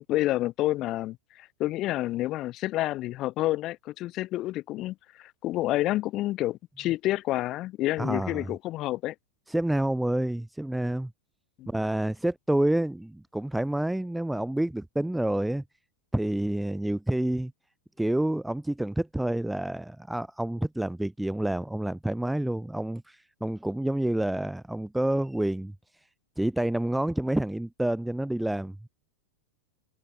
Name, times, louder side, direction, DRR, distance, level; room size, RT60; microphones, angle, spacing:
voice 1, 0.1-9.2 11.6-11.7, left 16 dB, 35° left, 3.7 m, -29 dB
voice 2, 8.0-8.5 9.5-11.1 11.7-15.6 16.1-17.5 18.0-25.7 26.4-28.9, right 1 dB, 5° right, 2.2 m, -28 dB
figure-of-eight pair, 90°, 0 cm